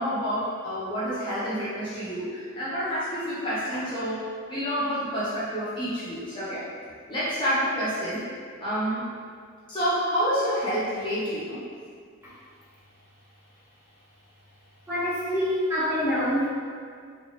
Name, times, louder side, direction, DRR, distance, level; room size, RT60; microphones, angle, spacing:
voice 1, 0.0-4.2 4.5-6.6 7.1-8.2 8.6-9.1 9.7-11.6, equal, 25° left, -11 dB, 0.7 m, -28 dB
voice 2, 14.9-16.5, equal, 10° right, -11 dB, 1.0 m, -25 dB
3.3 x 2.7 x 3.3 m, 2.1 s
head